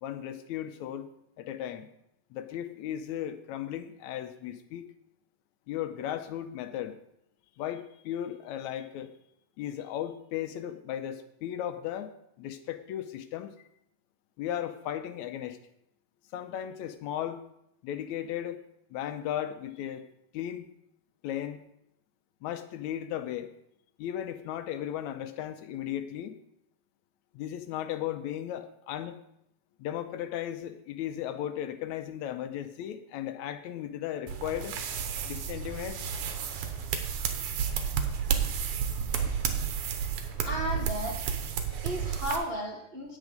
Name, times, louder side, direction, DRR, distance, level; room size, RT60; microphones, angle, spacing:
voice 1, 0.0-1.1 1.4-1.9 2.3-4.8 5.7-7.0 7.6-9.1 9.6-13.5 14.4-15.6 16.3-17.4 17.8-18.6 18.9-20.0 20.3-20.7 21.2-21.6 22.4-23.5 24.0-26.4 27.3-29.2 29.8-34.8 35.2-36.0 41.7-41.9, left 11 dB, 80° left, 9 dB, 2.0 m, -36 dB
sound 1, 34.3-42.4, right 7 dB, 85° right, 2.5 m, -31 dB
voice 2, 40.4-41.2 41.8-43.2, equal, 45° right, -2 dB, 0.7 m, -34 dB
10.0 x 8.3 x 5.2 m, 0.77 s
omnidirectional pair, 3.3 m